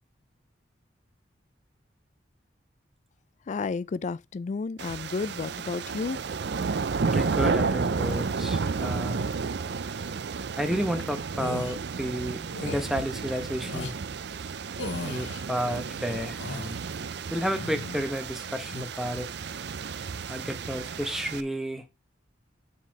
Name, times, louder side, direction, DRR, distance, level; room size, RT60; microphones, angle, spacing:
voice 1, 3.5-6.2, left 4 dB, 40° left, 0.3 m, -32 dB
sound 1, 4.8-21.4, right 5 dB, 65° right, 0.5 m, -32 dB
voice 2, 7.0-9.3 10.6-13.9 15.0-16.8 17.3-19.3 20.3-21.8, equal, ahead, 0.9 m, -31 dB
sound 2, 11.3-11.8 12.5-12.9 13.6-13.9 14.8-15.4 16.1-16.8 17.4-18.1 18.5-18.9, left 3 dB, 80° left, 1.0 m, -37 dB
7.6 x 4.0 x 5.2 m
head